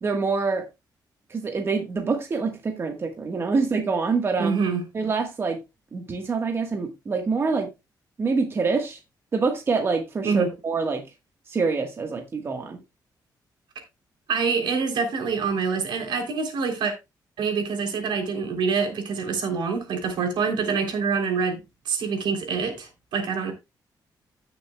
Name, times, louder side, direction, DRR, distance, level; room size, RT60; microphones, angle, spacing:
voice 1, 0.0-0.7 1.3-4.6 4.9-5.6 5.9-7.7 8.2-9.0 9.3-11.0 11.5-12.8, right 4 dB, 30° right, 1.4 m, -25 dB
voice 2, 4.4-4.8 10.2-10.5 14.3-16.9 17.4-23.5, right 5 dB, 85° right, 3.2 m, -26 dB
16.0 x 6.8 x 2.3 m
wide cardioid pair, 170°, 8 cm